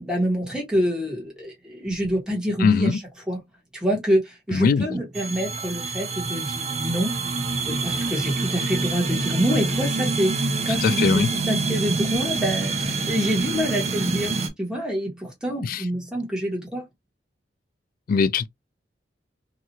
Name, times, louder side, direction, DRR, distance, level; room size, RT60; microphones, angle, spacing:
voice 1, 0.0-3.0 3.3-3.4 3.7-7.1 7.6-16.8, equal, 5° right, 1.1 m, -26 dB
voice 2, 2.6-3.0 4.5-4.8 10.7-11.3 15.6-15.8 18.1-18.5, left 5 dB, 55° left, 0.3 m, -21 dB
sound 1, 5.1-14.5, right 3 dB, 40° right, 0.6 m, -26 dB
2.9 x 2.4 x 2.7 m
head